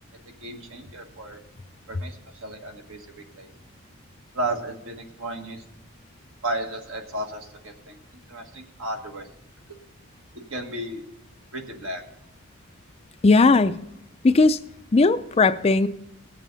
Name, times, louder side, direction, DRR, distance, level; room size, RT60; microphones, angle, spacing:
voice 1, 0.4-1.4 1.9-3.5 4.3-5.6 6.4-8.0 8.3-9.3 10.5-11.0 11.5-12.0, right 1 dB, 70° right, 3 dB, 1.8 m, -33 dB
voice 2, 13.2-13.8 14.2-14.6 14.9-15.9, left 3 dB, 30° left, 11 dB, 0.4 m, -17 dB
19.5 x 7.3 x 4.0 m, 0.86 s
head